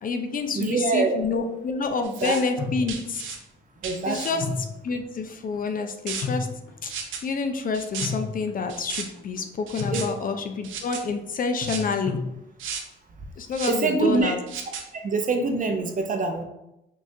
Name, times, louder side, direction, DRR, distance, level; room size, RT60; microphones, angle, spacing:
voice 1, 0.0-3.2 4.1-6.5 6.8-6.9 7.2-12.2 13.4-14.4, left 4 dB, 45° left, 6 dB, 0.5 m, -28 dB
voice 2, 0.5-1.2 2.2-2.4 3.8-4.5 9.9-10.0 13.7-14.4 14.9-16.4, right 3 dB, 40° right, 5 dB, 0.6 m, -25 dB
sound 1, 2.0-2.4 2.9-3.4 3.8-4.3 6.1-6.2 6.9-7.2 7.7-8.1 8.7-9.0 9.7-10.1 10.6-11.0 11.6-11.9 12.6-12.8 13.5-13.8 14.5-14.8, right 7 dB, 80° right, 0.7 m, -34 dB
sound 2, 2.6-3.4 4.4-5.1 5.5-5.6 6.2-6.9 8.0-8.8 9.1-9.4 9.8-10.5 11.6-12.3, left 4 dB, 75° left, 0.8 m, -33 dB
5.4 x 2.5 x 2.7 m, 0.89 s
cardioid pair, 90°, 20 cm